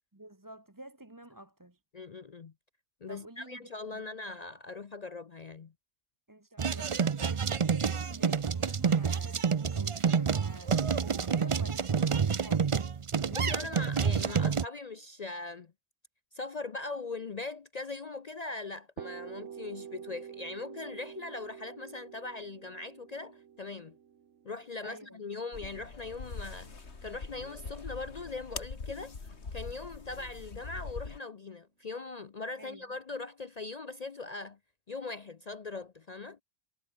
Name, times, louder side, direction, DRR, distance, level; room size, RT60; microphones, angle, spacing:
voice 1, 0.1-1.8 3.1-4.1 6.3-12.7 24.8-25.2 32.6-32.9, right 1 dB, 15° right, 1.5 m, -50 dB
voice 2, 1.9-2.5 3.0-5.7 13.3-15.7 16.3-24.0 24.4-26.7 27.0-34.6 34.9-36.4, left 3 dB, 40° left, 0.6 m, -40 dB
sound 1, 6.6-14.6, right 6 dB, 40° right, 0.5 m, -28 dB
sound 2, 19.0-26.7, right 8 dB, 70° right, 1.3 m, -47 dB
sound 3, 25.5-31.2, left 4 dB, 60° left, 2.5 m, -43 dB
omnidirectional pair, 1.3 m